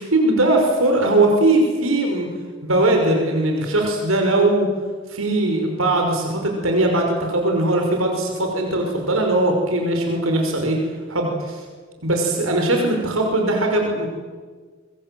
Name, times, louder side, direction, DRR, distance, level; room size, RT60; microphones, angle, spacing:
voice 1, 0.1-2.3 2.6-4.7 5.1-10.8 11.1-11.6 12.0-14.1, right 2 dB, 85° right, 2 dB, 5.5 m, -20 dB
25.0 x 25.0 x 7.8 m, 1.5 s
head